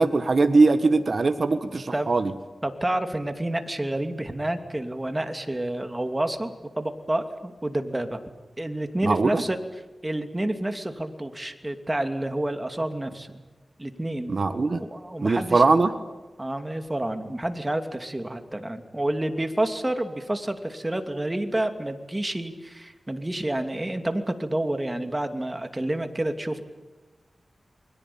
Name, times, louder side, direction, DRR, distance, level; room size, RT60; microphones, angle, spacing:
voice 1, 0.0-2.3 9.0-9.4 14.3-14.8 15.2-15.9, right 3 dB, 55° right, 9 dB, 1.5 m, -21 dB
voice 2, 2.6-8.2 8.6-9.6 10.0-13.4 13.8-14.3 14.8-15.6 16.4-26.6, right 1 dB, 20° right, 7 dB, 2.7 m, -29 dB
29.0 x 22.0 x 8.8 m, 1.2 s
wide cardioid pair, 65°, 0 cm